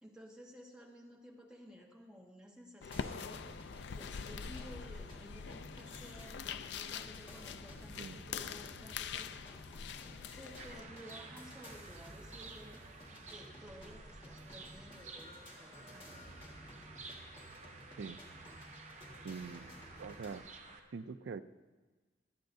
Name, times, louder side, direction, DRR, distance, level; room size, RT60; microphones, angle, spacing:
voice 1, 0.0-3.4 3.9-9.7 10.3-12.8 13.2-16.3, equal, 5° right, -2 dB, 1.3 m, -55 dB
sound 1, 2.8-10.8, left 6 dB, 65° left, 0.4 m, -44 dB
sound 2, 2.9-20.4, equal, 30° left, 1.6 m, -54 dB
sound 3, 10.6-20.8, right 3 dB, 40° right, 0.9 m, -52 dB
voice 2, 19.2-19.7 20.0-20.4 20.9-21.4, right 5 dB, 75° right, 12 dB, 0.4 m, -43 dB
24.5 x 8.6 x 2.7 m, 1.3 s
head